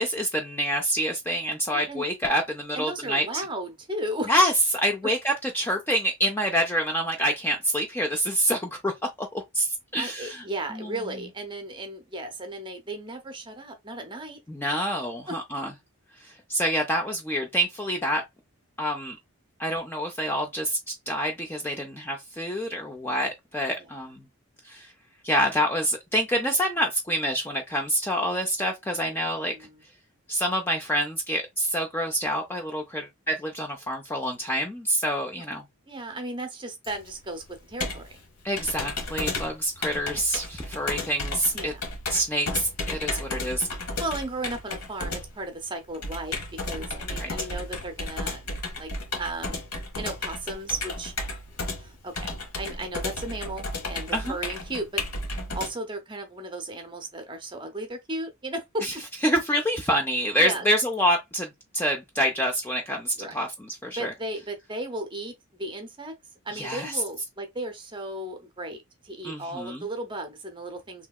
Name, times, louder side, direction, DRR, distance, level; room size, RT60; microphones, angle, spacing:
voice 1, 0.0-3.4 4.3-8.9 9.2-10.4 10.7-10.9 14.5-15.7 16.2-18.2 18.8-19.2 19.6-24.2 24.6-24.9 25.2-29.5 30.3-35.6 38.4-41.7 42.1-43.7 47.1-47.3 54.1-54.3 58.8-58.9 59.2-64.1 66.5-67.0 69.2-69.9, equal, 10° left, 0.4 m, -27 dB
voice 2, 1.7-2.1 2.7-4.3 10.0-14.4 15.3-15.4 23.8-23.9 29.0-29.8 35.9-38.2 39.5-39.7 41.5-41.8 43.1-43.3 44.0-46.4 46.6-48.4 48.8-48.9 49.2-49.6 50.0-51.1 51.8-52.3 52.6-55.0 55.5-58.9 60.4-60.7 63.2-63.4 63.9-66.1 66.4-68.8 69.0-71.1, right 1 dB, 20° right, 0.7 m, -35 dB
Computer keyboard, 36.8-55.7, left 2 dB, 90° left, 1.1 m, -33 dB
3.3 x 2.8 x 2.3 m
head